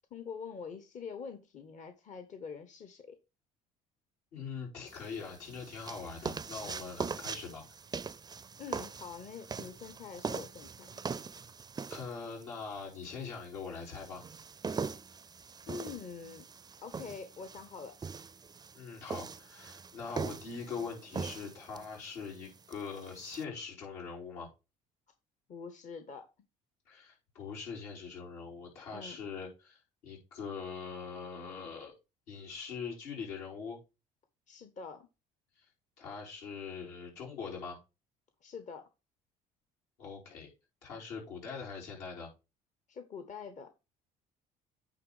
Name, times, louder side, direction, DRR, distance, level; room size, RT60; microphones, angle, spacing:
voice 1, 0.1-3.2 8.6-11.0 15.7-16.5 16.8-17.9 25.5-26.3 28.9-29.2 34.5-35.1 38.4-38.9 42.9-43.7, left 6 dB, 45° left, 9 dB, 1.0 m, -45 dB
voice 2, 4.3-7.6 11.9-14.2 18.7-24.5 26.9-31.9 32.3-33.8 35.6-35.7 36.0-37.8 40.0-40.5 40.8-42.3, left 5 dB, 80° left, -3 dB, 3.8 m, -42 dB
sound 1, 4.9-23.4, right 5 dB, 25° right, 0.5 m, -42 dB
9.0 x 3.2 x 4.8 m, 0.28 s
hypercardioid pair, 65°, 17 cm